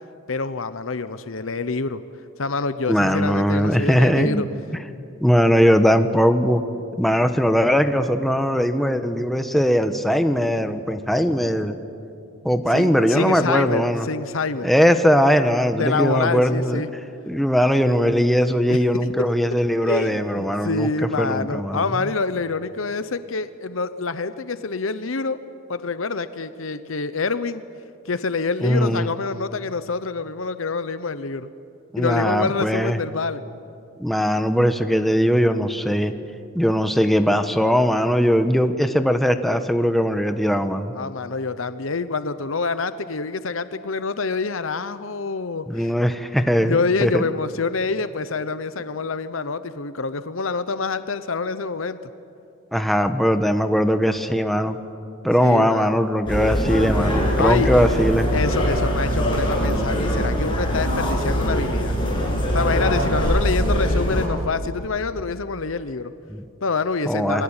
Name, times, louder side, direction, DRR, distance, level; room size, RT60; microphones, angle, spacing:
voice 1, 0.3-2.0 2.4-4.5 12.7-14.7 15.8-16.9 18.7-18.8 19.8-25.4 25.7-27.6 28.0-31.5 32.0-33.4 40.9-45.9 46.6-52.0 55.4-56.0 57.4-57.7 58.3-62.0 62.5-66.1 66.6-67.4, left 4 dB, 80° left, 12 dB, 0.9 m, -26 dB
voice 2, 2.9-4.5 5.2-6.6 7.0-11.8 12.4-14.1 14.6-16.8 17.3-20.9 21.2-22.1 28.6-29.1 31.9-33.0 34.0-36.1 36.5-40.9 45.7-47.3 52.7-54.8 55.2-58.3 66.3-66.4 67.1-67.4, equal, ahead, 7 dB, 1.2 m, -20 dB
sound 1, 56.3-64.3, equal, 25° left, 7.6 m, -22 dB
28.0 x 22.0 x 9.0 m, 2.5 s
head